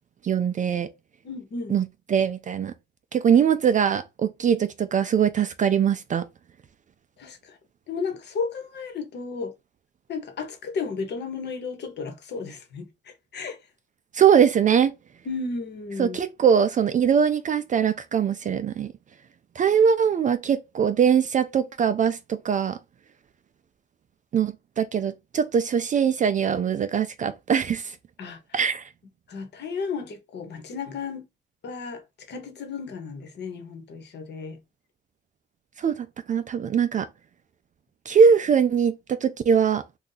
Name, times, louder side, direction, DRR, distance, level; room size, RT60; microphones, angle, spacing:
voice 1, 0.2-0.9 1.7-2.7 3.1-6.2 14.1-14.9 16.0-18.9 19.6-22.8 24.3-28.0 28.5-28.9 35.8-37.1 38.1-39.8, right 7 dB, 40° right, 0.4 m, -22 dB
voice 2, 1.2-1.8 7.2-7.6 7.9-9.5 10.1-13.6 15.3-16.2 28.2-28.4 29.3-31.3 31.6-32.0 32.3-34.6, left 4 dB, 60° left, 1.0 m, -33 dB
2.7 x 2.3 x 3.8 m
cardioid pair, 90°, 20 cm